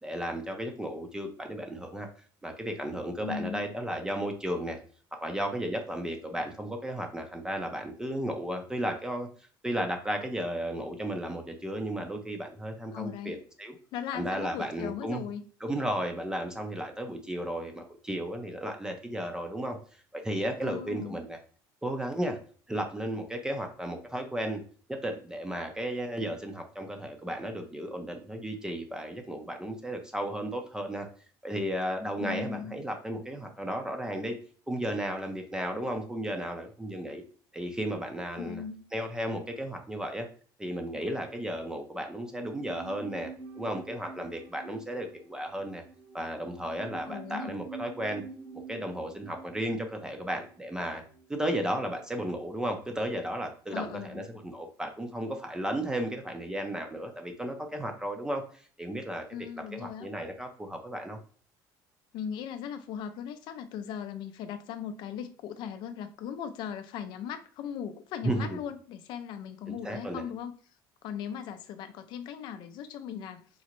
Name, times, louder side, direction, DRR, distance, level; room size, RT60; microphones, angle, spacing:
voice 1, 0.0-2.1 2.4-4.8 5.2-9.3 9.6-13.8 14.1-15.2 15.6-19.8 20.1-21.4 21.8-22.4 22.7-24.6 24.9-31.1 31.4-34.3 34.7-37.2 37.5-38.6 38.9-40.3 40.6-43.3 43.6-45.8 46.1-48.2 48.7-51.0 51.3-59.2 59.8-61.2 68.2-68.6 69.7-70.2, right 1 dB, 10° right, 0.5 m, -34 dB
voice 2, 3.2-3.6 12.9-13.4 13.9-15.5 20.6-21.2 32.2-32.8 38.4-38.9 47.1-47.6 53.7-54.2 59.3-60.1 62.1-70.6 71.0-73.5, left 8 dB, 65° left, 0.5 m, -38 dB
sound 1, 42.3-51.7 51.9-52.0, right 4 dB, 65° right, 0.9 m, -48 dB
3.7 x 2.1 x 2.9 m
cardioid pair, 130°, 8 cm